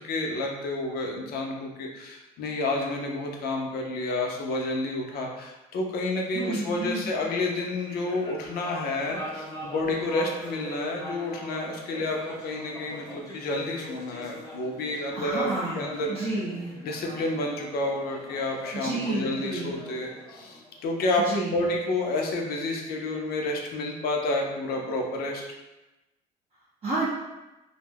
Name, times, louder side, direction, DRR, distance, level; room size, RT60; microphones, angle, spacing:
voice 1, 0.0-12.2 12.4-15.5 15.7-16.1 16.8-21.2 21.5-25.4, left 2 dB, 65° left, 1 dB, 0.6 m, -30 dB
voice 2, 6.3-7.1 15.1-16.7 18.7-19.8 21.2-21.6 26.8-27.1, right 2 dB, 35° right, -7 dB, 0.6 m, -31 dB
sound 1, 7.5-21.2, equal, 20° left, 0.7 m, -42 dB
2.3 x 2.1 x 3.3 m, 1.0 s
cardioid pair, 110°, 17 cm